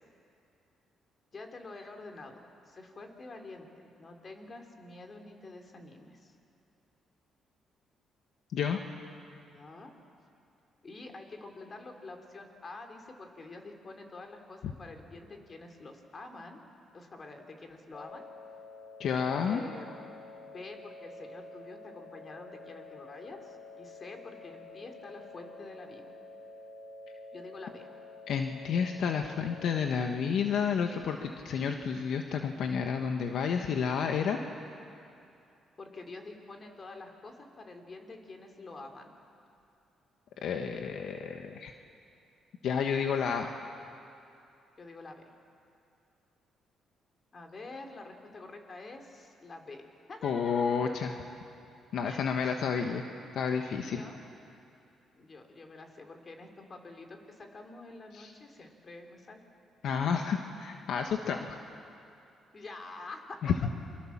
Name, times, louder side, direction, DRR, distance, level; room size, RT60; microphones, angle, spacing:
voice 1, 1.3-2.4 2.7-3.7 4.0-6.4 9.5-10.0 10.8-16.6 16.9-18.2 19.5-20.1 20.4-26.0 27.3-27.9 35.8-39.1 44.8-45.2 47.3-50.8 52.1-52.3 53.9-54.2 55.1-59.4 59.8-60.0 62.5-63.4, left 2 dB, 40° left, 4 dB, 3.7 m, -47 dB
sound 1, 17.9-29.9, left 3 dB, 55° left, 5.0 m, -49 dB
voice 2, 19.0-19.6 28.3-34.4 40.4-41.7 42.6-43.5 50.2-51.1 51.9-53.0 53.3-54.0 58.1-58.3 59.8-61.6 63.4-63.5, left 6 dB, 70° left, 4 dB, 1.4 m, -30 dB
29.0 x 24.0 x 7.4 m, 2.6 s
cardioid pair, 90°, 0 cm